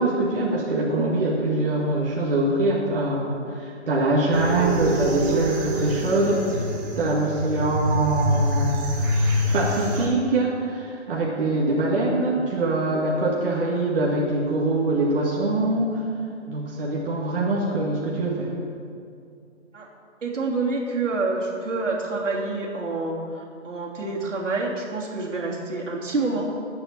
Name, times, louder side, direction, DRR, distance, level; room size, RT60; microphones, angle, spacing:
voice 1, 0.0-6.7 7.0-8.9 9.5-16.0 16.5-18.5, right 2 dB, 50° right, -3 dB, 1.9 m, -23 dB
sound 1, 4.3-10.1, equal, 15° right, 1.0 m, -25 dB
voice 2, 20.2-26.5, right 3 dB, 80° right, -3 dB, 3.0 m, -27 dB
9.9 x 8.6 x 7.6 m, 2.4 s
hypercardioid pair, 160°, 36 cm